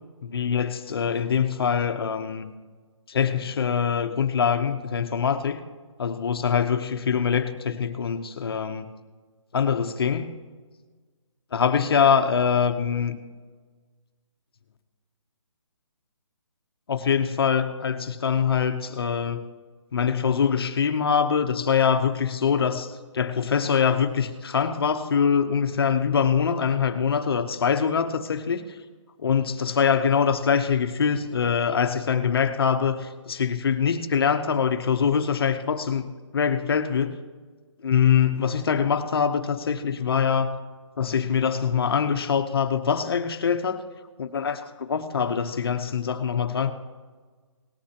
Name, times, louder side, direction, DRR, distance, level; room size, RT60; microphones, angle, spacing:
voice 1, 0.2-2.5 3.1-5.6 6.0-8.9 9.5-10.3 11.5-13.2 16.9-19.4 19.9-28.7 29.2-37.1 37.8-40.6 41.0-43.8 44.2-46.7, left 7 dB, 50° left, 8 dB, 0.9 m, -24 dB
18.5 x 12.5 x 2.9 m, 1.5 s
hypercardioid pair, 165°, 16 cm